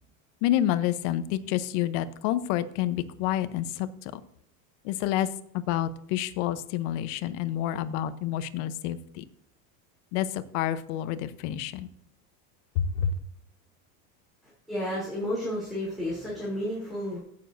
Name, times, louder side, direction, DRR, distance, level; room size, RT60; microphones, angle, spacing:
voice 1, 0.4-4.2 4.8-5.3 5.5-9.2 10.1-11.9 12.8-13.1, left 11 dB, 60° left, 13 dB, 0.9 m, -28 dB
voice 2, 14.7-17.2, left 1 dB, ahead, -7 dB, 3.1 m, -31 dB
16.0 x 7.0 x 2.6 m, 0.73 s
supercardioid pair, 145°, 38 cm